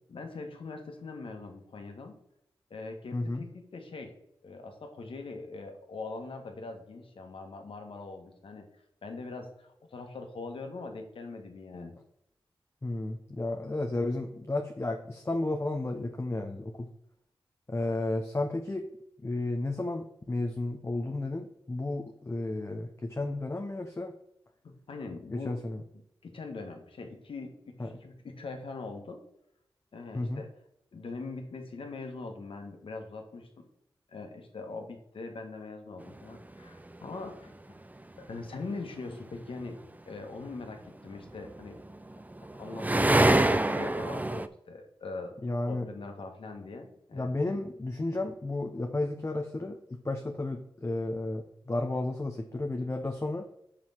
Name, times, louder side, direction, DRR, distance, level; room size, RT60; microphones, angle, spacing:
voice 1, 0.1-2.2 2.7-4.1 4.4-8.7 9.0-11.9 24.6-25.6 26.2-29.2 29.9-30.5 30.9-33.7 34.1-37.6 38.2-41.8 42.6-42.9 43.2-45.3 45.7-47.3, left 3 dB, 75° left, 4 dB, 1.5 m, -42 dB
voice 2, 3.1-3.4 12.8-16.9 17.7-18.9 19.2-24.2 25.3-25.8 27.8-27.9 30.1-30.4 45.4-45.9 47.1-53.5, left 2 dB, 30° left, 4 dB, 0.8 m, -33 dB
sound 1, 36.3-36.4 41.5-44.5, right 1 dB, 15° right, 0.5 m, -25 dB
5.4 x 5.0 x 5.9 m, 0.76 s
cardioid pair, 40°, 9 cm